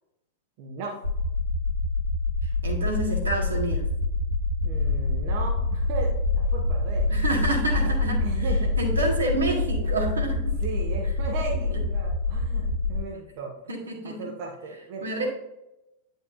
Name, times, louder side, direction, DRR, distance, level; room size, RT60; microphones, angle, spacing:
voice 1, 0.6-0.9 4.6-7.1 8.2-9.0 10.6-13.5 14.0-15.3, right 4 dB, 45° right, 0 dB, 1.1 m, -36 dB
sound 1, 1.0-13.0, left 2 dB, 85° left, 1.2 m, -26 dB
voice 2, 2.4-3.8 7.1-10.6 11.5-11.8 12.6-12.7 13.7-14.3 15.0-15.3, right 1 dB, 75° right, 0 dB, 1.6 m, -29 dB
9.6 x 5.4 x 2.6 m, 0.90 s
figure-of-eight pair, 90°, 0 cm